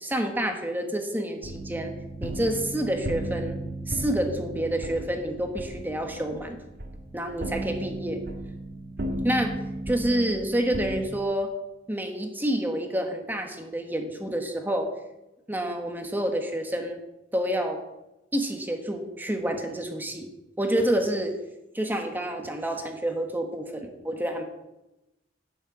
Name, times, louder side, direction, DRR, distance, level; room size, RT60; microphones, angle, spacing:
voice 1, 0.0-1.9 2.2-3.6 3.9-6.6 7.1-8.2 9.2-9.5 9.9-11.5 11.9-14.9 15.5-17.0 17.3-17.8 18.3-20.3 20.6-21.3 21.7-24.4, right 1 dB, 10° right, 4 dB, 1.3 m, -28 dB
sound 1, 1.4-11.0, right 1 dB, 55° right, 1.7 m, -35 dB
12.0 x 6.6 x 8.0 m, 0.97 s
head